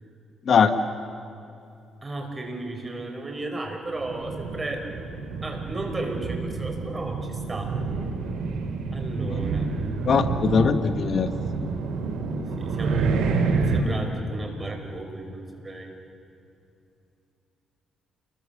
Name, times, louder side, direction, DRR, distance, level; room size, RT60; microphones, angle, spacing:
voice 1, 2.0-4.9 5.4-7.7 8.9-9.7 12.6-15.9, right 2 dB, 25° right, 3 dB, 5.1 m, -34 dB
sound 1, 3.9-13.8, right 4 dB, 80° right, 3.1 m, -28 dB
voice 2, 10.0-11.3, left 6 dB, 55° left, 9 dB, 1.3 m, -20 dB
29.0 x 22.5 x 7.1 m, 2.6 s
cardioid pair, 90°, 0 cm